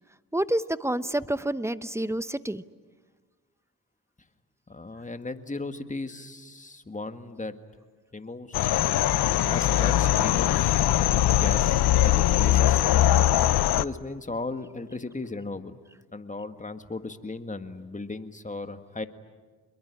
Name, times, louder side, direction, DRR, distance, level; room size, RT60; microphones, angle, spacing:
voice 1, 0.3-2.6, right 1 dB, 5° right, 14 dB, 0.9 m, -28 dB
voice 2, 4.7-7.6 8.1-8.7 9.5-10.8 11.3-12.8 13.8-15.8 16.1-19.1, left 3 dB, 20° left, 8 dB, 1.8 m, -36 dB
sound 1, 8.5-13.8, left 13 dB, 75° left, 0.8 m, -21 dB
27.5 x 22.0 x 9.8 m, 1.4 s
cardioid pair, 75°, 38 cm